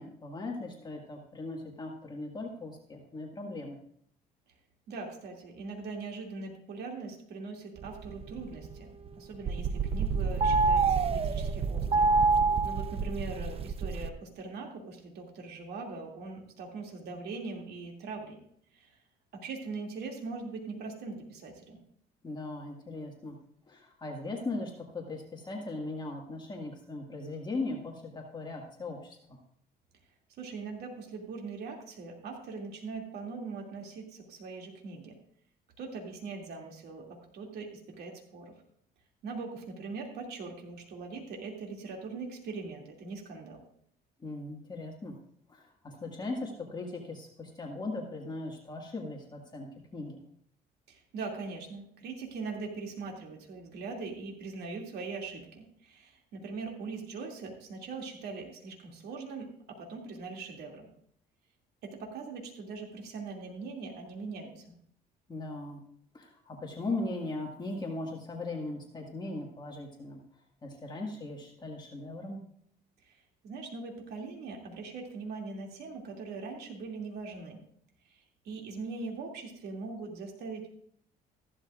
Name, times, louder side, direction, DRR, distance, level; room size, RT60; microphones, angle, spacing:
voice 1, 0.0-3.8 22.2-23.4 23.7-29.4 44.2-45.2 45.5-50.2 65.3-65.8 66.1-70.2 70.6-72.4, left 2 dB, 25° left, 0 dB, 1.9 m, -38 dB
voice 2, 4.9-8.9 9.1-12.1 12.6-18.4 18.7-19.0 19.3-21.8 30.4-35.1 35.8-38.5 39.2-43.6 50.9-59.5 59.8-60.9 61.8-64.6 73.0-73.2 73.4-77.6 78.1-80.7, right 4 dB, 75° right, 1 dB, 2.6 m, -41 dB
sound 1, 7.8-9.1 9.3-14.1, right 4 dB, 35° right, 0.6 m, -27 dB
14.5 x 12.0 x 2.5 m, 0.66 s
cardioid pair, 110°, 17 cm